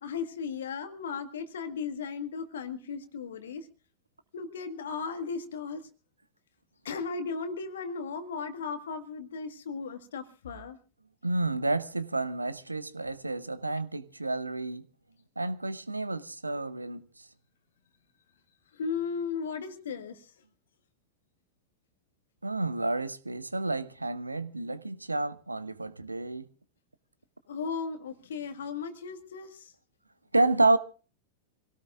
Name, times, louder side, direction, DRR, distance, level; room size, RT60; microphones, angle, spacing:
voice 1, 0.0-3.7 4.3-5.9 6.8-10.8 18.7-20.3 27.5-29.7, left 5 dB, 65° left, 1.6 m, -36 dB
voice 2, 11.2-14.8 15.4-17.0 22.4-26.5 30.3-30.8, right 2 dB, 85° right, 0.8 m, -29 dB
27.0 x 17.5 x 2.4 m
figure-of-eight pair, 90°, 0 cm